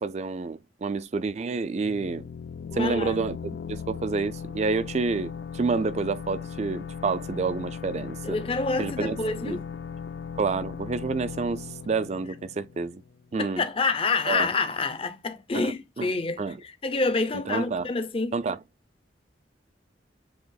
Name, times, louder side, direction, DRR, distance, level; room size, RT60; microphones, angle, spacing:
voice 1, 0.0-2.2 2.7-3.4 3.7-8.4 8.8-9.2 9.4-9.6 10.4-13.0 13.3-13.6 14.3-14.5 15.5-16.1 16.4-16.6 17.5-17.9 18.3-18.6, right 4 dB, 40° right, 0.4 m, -28 dB
sound 1, 1.8-13.3, left 6 dB, 80° left, 0.4 m, -38 dB
voice 2, 2.7-3.2 8.2-9.6 13.4-18.4, left 3 dB, 30° left, 0.6 m, -28 dB
7.8 x 2.9 x 2.3 m
head